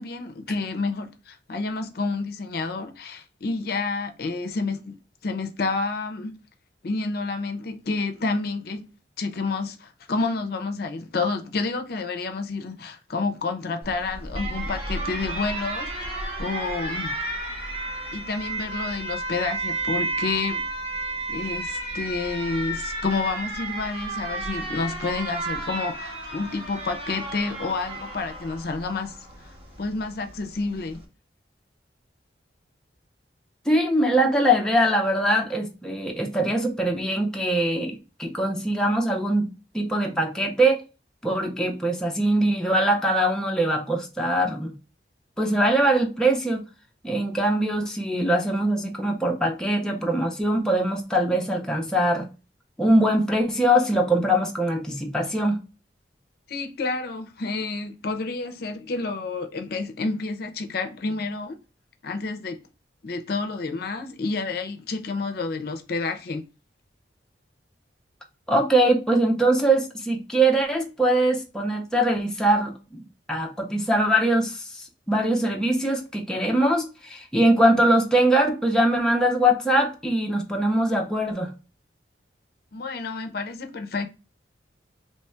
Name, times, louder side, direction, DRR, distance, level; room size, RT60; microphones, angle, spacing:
voice 1, 0.0-5.0 5.2-6.4 6.8-8.8 9.2-17.1 18.1-20.7 21.3-29.2 29.8-31.0 56.5-61.6 62.0-62.6 63.0-66.4 82.7-84.1, left 3 dB, 55° left, 0.5 m, -29 dB
Alarm, 13.8-31.0, right 2 dB, 30° right, 0.9 m, -32 dB
voice 2, 33.7-39.5 39.7-40.8 41.2-44.7 45.4-46.6 47.0-52.3 52.8-55.6 68.5-73.0 73.3-81.5, right 1 dB, 5° left, 0.5 m, -22 dB
3.1 x 2.3 x 4.2 m
head